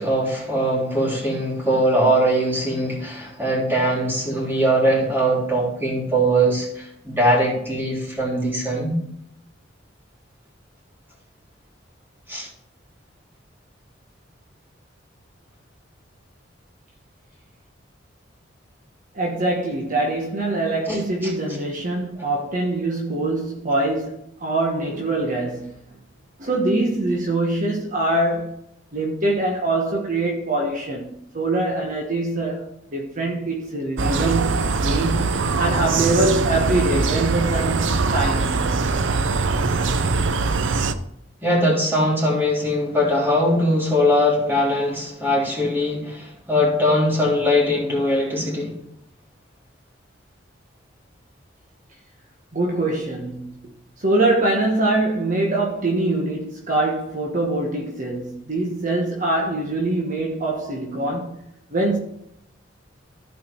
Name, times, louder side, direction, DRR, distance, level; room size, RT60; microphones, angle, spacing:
voice 1, 0.0-9.0 12.3-12.5 20.9-21.3 41.4-48.7, equal, 10° right, 3.6 m, -21 dB
voice 2, 19.1-25.8 26.4-28.6 28.9-32.7 32.9-38.8 52.5-53.6 54.0-61.4 61.7-62.0, right 2 dB, 45° right, 1.3 m, -23 dB
sound 1, 34.0-40.9, right 4 dB, 85° right, 0.7 m, -22 dB
14.5 x 5.0 x 4.6 m
head